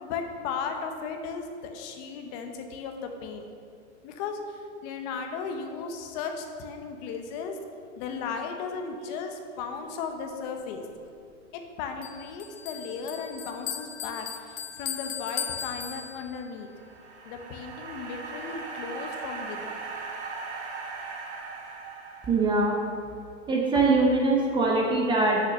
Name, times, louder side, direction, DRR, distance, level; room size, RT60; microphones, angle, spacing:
voice 1, 0.0-3.5 4.0-7.6 8.0-10.8 11.5-16.7 17.2-19.8, left 5 dB, 35° left, 5 dB, 0.9 m, -36 dB
Bell, 12.0-16.5, left 7 dB, 80° left, 0.9 m, -37 dB
sound 1, 16.5-22.9, right 4 dB, 65° right, 1.6 m, -39 dB
voice 2, 22.3-22.8 23.5-25.4, right 3 dB, 15° right, -1 dB, 0.6 m, -22 dB
6.8 x 6.0 x 6.7 m, 2.4 s
hypercardioid pair, 140°, 37 cm